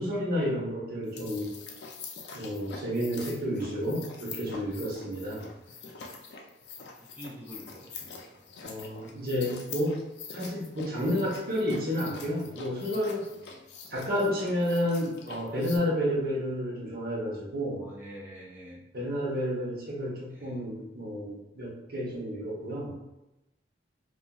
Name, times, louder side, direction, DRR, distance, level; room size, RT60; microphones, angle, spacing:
voice 1, 0.0-1.5 2.3-5.5 8.6-10.0 10.3-13.3 13.9-17.9 18.9-22.9, equal, 55° right, -4 dB, 0.8 m, -31 dB
sound 1, 1.0-15.8, left 5 dB, 70° left, 0.4 m, -45 dB
voice 2, 7.0-8.4 13.4-13.6 17.6-18.8 20.3-20.6, equal, 10° right, -3 dB, 0.4 m, -47 dB
2.9 x 2.4 x 2.3 m, 0.93 s
head